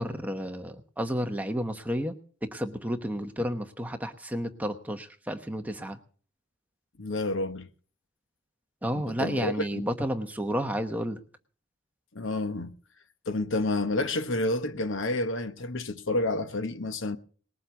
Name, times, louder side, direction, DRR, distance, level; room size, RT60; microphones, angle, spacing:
voice 1, 0.0-6.0 8.8-11.2, equal, 5° right, 1.0 m, -31 dB
voice 2, 7.0-7.7 8.9-9.9 12.1-12.7 13.3-17.2, left 2 dB, 60° left, 1.0 m, -29 dB
20.0 x 7.6 x 7.0 m
head